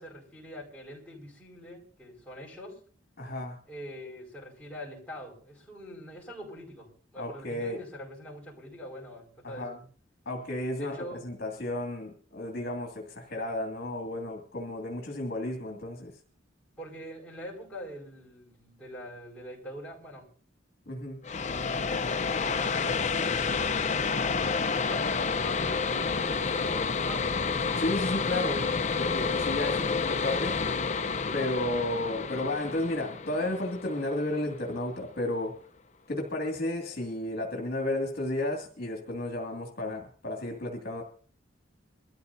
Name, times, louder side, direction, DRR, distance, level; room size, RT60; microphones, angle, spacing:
voice 1, 0.0-2.8 3.7-9.8 10.8-11.2 16.8-20.3 21.8-23.0 24.2-27.3, equal, 5° left, -4 dB, 5.1 m, -44 dB
voice 2, 3.2-3.6 7.2-7.8 9.4-9.8 10.3-11.0 11.2-16.1 20.9-21.2 27.8-28.7 29.0-30.6 31.3-35.5 36.1-41.0, left 1 dB, 50° left, 0 dB, 2.3 m, -32 dB
sound 1, 21.2-34.6, left 5 dB, 35° left, 0.7 m, -29 dB
24.0 x 13.5 x 2.7 m, 0.44 s
head